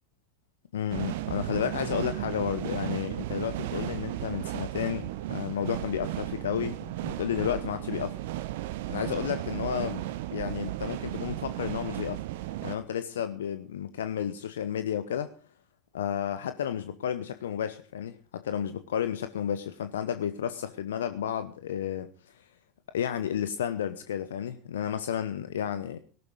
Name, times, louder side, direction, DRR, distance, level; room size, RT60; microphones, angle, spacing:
voice 1, 0.7-8.2 8.9-10.0 10.3-12.2 12.6-15.3 15.9-22.5 22.9-26.0, left 9 dB, 70° left, 11 dB, 0.9 m, -32 dB
sound 1, 0.9-12.8, right 15 dB, 65° right, 1.1 m, -35 dB
18.0 x 12.5 x 4.8 m, 0.40 s
figure-of-eight pair, 75°, 0 cm